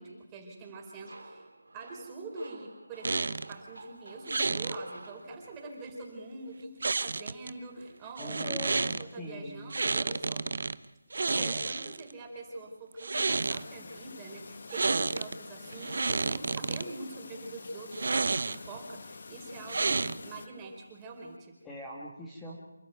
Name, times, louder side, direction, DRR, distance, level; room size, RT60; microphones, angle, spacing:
voice 1, 0.0-1.5 1.7-10.5 11.2-21.5, right 2 dB, 15° right, 0 dB, 4.5 m, -44 dB
sound 1, 1.0-5.8, right 2 dB, 85° right, 4.3 m, -51 dB
sound 2, 3.0-3.5 4.3-4.8 6.8-7.5 8.2-9.0 9.7-10.8 11.1-12.1 12.9-13.6 14.7-15.3 15.7-16.8 17.9-18.8 19.7-20.4, right 3 dB, 60° right, 0.8 m, -30 dB
voice 2, 8.2-9.7 11.4-11.6 21.6-22.6, left 1 dB, 10° left, -5 dB, 2.4 m, -42 dB
Chirp tweet, 13.3-20.5, left 4 dB, 50° left, 1.3 m, -47 dB
28.0 x 12.5 x 9.3 m, 1.0 s
figure-of-eight pair, 165°, 0 cm